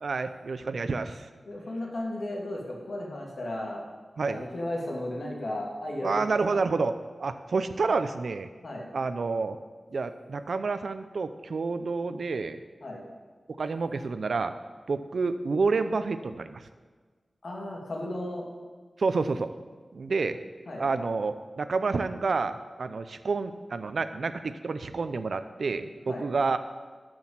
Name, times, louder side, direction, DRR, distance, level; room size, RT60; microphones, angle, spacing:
voice 1, 0.0-1.2 4.2-4.4 6.0-6.9 7.2-8.5 8.9-9.6 9.9-12.6 13.6-14.5 14.9-16.6 19.0-19.5 19.9-20.4 20.8-26.6, right 4 dB, 75° right, 11 dB, 0.6 m, -29 dB
voice 2, 1.4-3.8 4.3-6.6 8.6-8.9 12.8-13.0 17.4-18.5 20.7-20.8 26.1-26.3, left 1 dB, 65° left, -1 dB, 2.7 m, -35 dB
12.5 x 6.3 x 7.3 m, 1.4 s
wide cardioid pair, 90°, 0 cm